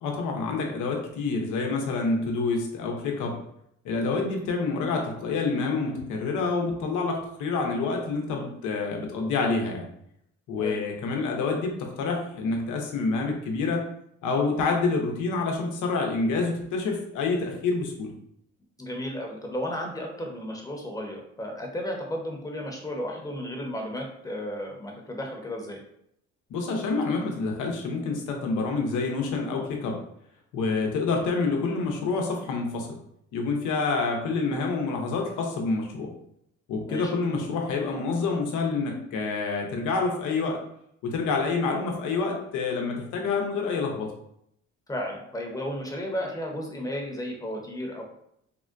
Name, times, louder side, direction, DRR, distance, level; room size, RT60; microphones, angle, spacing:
voice 1, 0.0-3.4 3.8-9.9 10.5-13.8 14.2-18.1 26.5-30.0 30.5-33.0 33.3-36.1 36.7-40.6 41.0-44.1, left 4 dB, 90° left, 2 dB, 0.7 m, -27 dB
voice 2, 18.8-25.8 36.9-37.1 44.9-48.0, equal, 10° left, 0 dB, 0.7 m, -33 dB
3.6 x 2.2 x 2.5 m, 0.74 s
cardioid pair, 90°, 30 cm